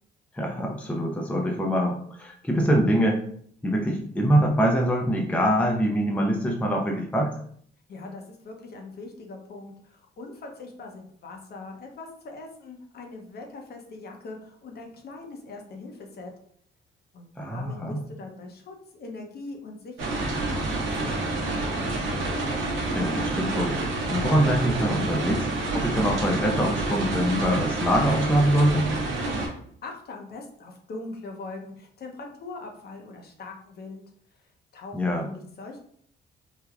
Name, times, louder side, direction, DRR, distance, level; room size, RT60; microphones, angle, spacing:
voice 1, 0.3-3.2 3.6-7.3 17.4-18.0 22.9-25.5 25.7-28.9 34.9-35.3, equal, 5° left, 1 dB, 0.4 m, -24 dB
voice 2, 7.9-16.3 17.1-21.9 29.8-34.0 34.7-35.8, left 3 dB, 55° left, 2 dB, 0.7 m, -41 dB
sound 1, 20.0-29.5, right 2 dB, 80° right, 0.8 m, -28 dB
3.3 x 2.1 x 2.3 m, 0.62 s
cardioid pair, 90°, 20 cm